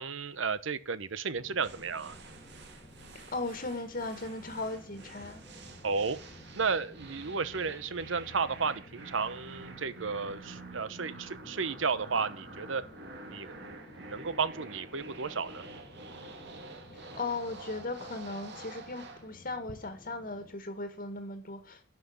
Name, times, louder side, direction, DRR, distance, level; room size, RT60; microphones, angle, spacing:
voice 1, 0.0-2.2 5.8-6.2 6.5-12.8 13.3-15.6, right 5 dB, 75° right, 1.0 m, -33 dB
sound 1, 1.3-20.5, left 1 dB, 30° left, 1.8 m, -54 dB
sound 2, 1.6-19.3, right 3 dB, 60° right, 2.4 m, -48 dB
voice 2, 3.1-5.4 16.9-21.9, left 3 dB, 50° left, 1.7 m, -37 dB
11.5 x 6.0 x 8.6 m
head